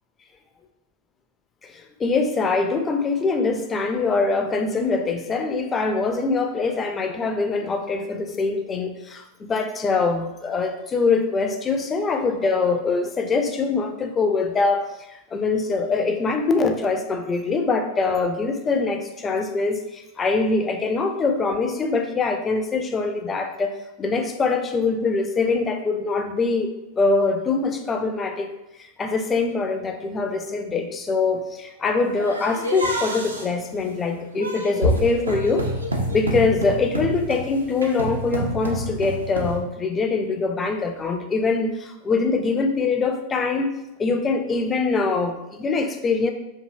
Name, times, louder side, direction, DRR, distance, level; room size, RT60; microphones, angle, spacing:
voice 1, 1.6-28.5 28.8-35.7 36.1-46.3, left 4 dB, 20° left, 6 dB, 0.3 m, -23 dB
sound 1, 32.2-39.6, equal, 80° right, 0.5 m, -28 dB
2.7 x 2.6 x 2.6 m, 0.96 s
figure-of-eight pair, 90°, 0 cm